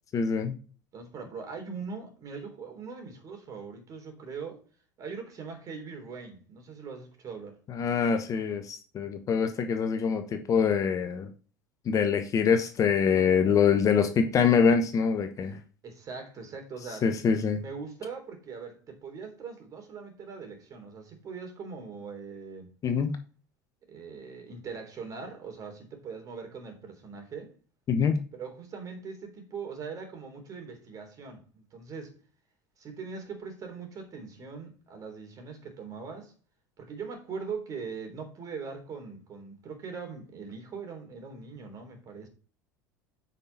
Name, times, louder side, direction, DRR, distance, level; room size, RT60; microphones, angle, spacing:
voice 1, 0.1-0.5 7.7-11.3 11.8-15.6 17.0-17.6 22.8-23.2 27.9-28.2, left 6 dB, 35° left, 1.1 m, -25 dB
voice 2, 0.9-4.6 5.0-7.6 15.8-17.0 17.6-22.7 23.9-27.5 28.3-32.1 32.8-36.3 36.8-42.3, right 5 dB, 35° right, 3.7 m, -41 dB
8.9 x 5.9 x 4.2 m
figure-of-eight pair, 70°, 10 cm